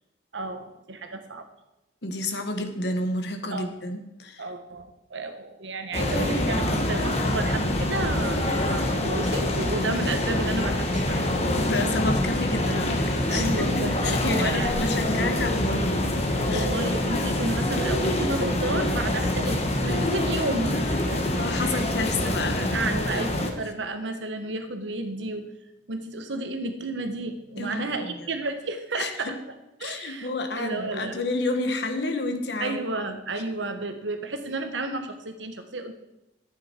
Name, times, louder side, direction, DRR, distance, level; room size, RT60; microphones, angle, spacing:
voice 1, 0.3-1.5 3.5-3.7 4.4-11.3 13.3-14.9 16.5-21.9 22.3-22.4 22.7-25.5 25.9-29.3 29.8-30.3 30.5-31.2 32.6-35.9, right 2 dB, 80° right, 7 dB, 1.3 m, -32 dB
voice 2, 2.0-4.4 11.5-16.1 16.5-16.7 21.4-23.2 27.6-28.3 28.9-29.4 29.8-32.8 33.3-33.4, left 2 dB, 65° left, 6 dB, 1.3 m, -30 dB
sound 1, 5.9-23.5, left 1 dB, 35° left, 1.3 m, -25 dB
12.0 x 8.9 x 4.5 m, 0.96 s
head